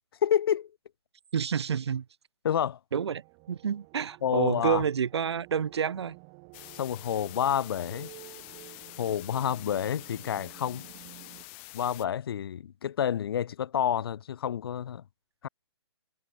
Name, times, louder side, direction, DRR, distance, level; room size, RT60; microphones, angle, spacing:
voice 1, 0.2-0.7 2.4-2.8 4.2-4.8 6.7-8.1 9.0-10.9 11.7-15.0 15.4-15.5, left 9 dB, 55° left, 0.9 m, -29 dB
voice 2, 1.3-2.0 2.9-3.2 3.5-6.1, right 7 dB, 65° right, 1.1 m, -29 dB
sound 1, 3.0-11.4, right 40 dB or more, 30° right, 7.6 m, -52 dB
sound 2, 6.5-12.1, left 31 dB, 25° left, 0.9 m, -47 dB
hypercardioid pair, 145°, 15 cm